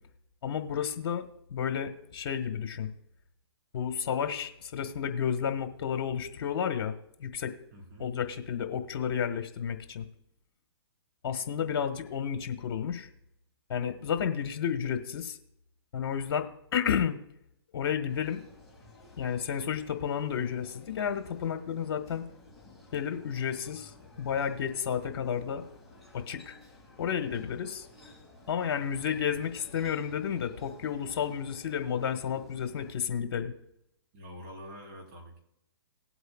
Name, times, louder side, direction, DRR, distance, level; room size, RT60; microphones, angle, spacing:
voice 1, 0.4-1.2 1.5-2.9 3.7-6.9 7.2-7.5 8.0-10.0 11.2-13.1 13.7-15.4 15.9-17.2 17.7-18.4 19.2-22.3 22.9-23.9 24.2-25.6 26.1-26.6 27.0-27.9 28.5-33.5, left 8 dB, 55° left, 7 dB, 1.4 m, -31 dB
voice 2, 7.7-8.1 34.1-35.4, equal, 40° right, -2 dB, 4.1 m, -46 dB
sound 1, 18.1-32.9, left 2 dB, ahead, 2.1 m, -54 dB
19.5 x 8.0 x 2.3 m, 0.79 s
hypercardioid pair, 140°, 14 cm